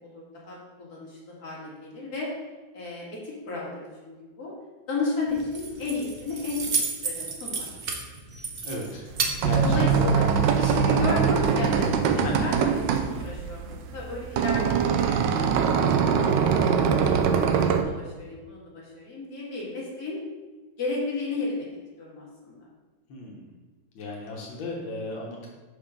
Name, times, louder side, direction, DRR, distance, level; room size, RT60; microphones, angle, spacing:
voice 1, 0.0-2.3 2.7-4.5 4.9-7.7 9.6-10.3 10.6-17.0 17.4-20.2 20.8-21.7 22.0-22.6, left 3 dB, 55° left, -5 dB, 2.4 m, -33 dB
Keys jangling, 5.3-10.3, right 4 dB, 50° right, 0.6 m, -32 dB
voice 2, 8.6-9.1 9.4-10.1 12.2-12.5 23.1-23.5 24.0-25.5, left 1 dB, 90° left, -2 dB, 1.8 m, -34 dB
sound 1, 9.1-17.8, right 6 dB, 75° right, 1.2 m, -23 dB
6.1 x 5.0 x 5.0 m, 1.2 s
omnidirectional pair, 2.0 m